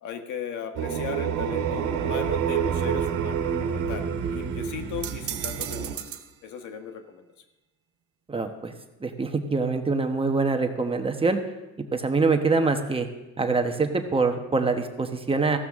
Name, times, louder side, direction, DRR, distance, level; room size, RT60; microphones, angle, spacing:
voice 1, 0.0-6.0 6.4-7.2, left 8 dB, 70° left, 6 dB, 1.5 m, -37 dB
sound 1, 0.7-5.9, right 8 dB, 70° right, 1.7 m, -28 dB
sound 2, 5.0-6.3, right 10 dB, 50° right, 1.0 m, -35 dB
voice 2, 8.3-8.7 9.0-11.4 11.9-13.1 13.4-15.6, right 4 dB, 15° right, 5 dB, 1.1 m, -24 dB
15.0 x 13.0 x 3.7 m, 1.0 s
cardioid pair, 100°, 31 cm